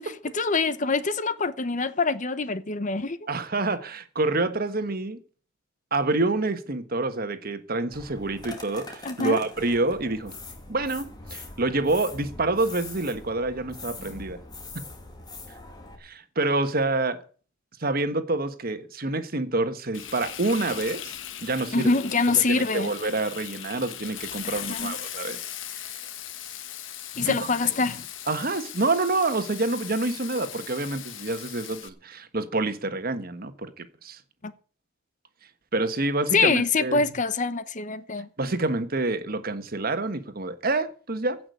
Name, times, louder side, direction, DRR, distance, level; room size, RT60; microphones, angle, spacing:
voice 1, 0.0-3.3 9.0-9.4 21.7-22.9 24.4-24.9 27.2-28.1 34.4-34.5 36.3-38.3, left 4 dB, 40° left, 0.9 m, -25 dB
voice 2, 3.3-5.2 5.9-10.3 10.7-14.4 14.7-14.8 16.0-17.2 17.8-21.9 22.5-25.4 25.7-25.9 27.2-27.3 28.3-34.2 35.7-37.0 38.4-41.4, right 2 dB, 50° right, 1.4 m, -27 dB
sound 1, 7.9-16.0, left 3 dB, 20° left, 2.7 m, -42 dB
Frying (food), 19.9-31.9, left 11 dB, 85° left, 1.3 m, -39 dB
16.0 x 6.1 x 8.2 m
head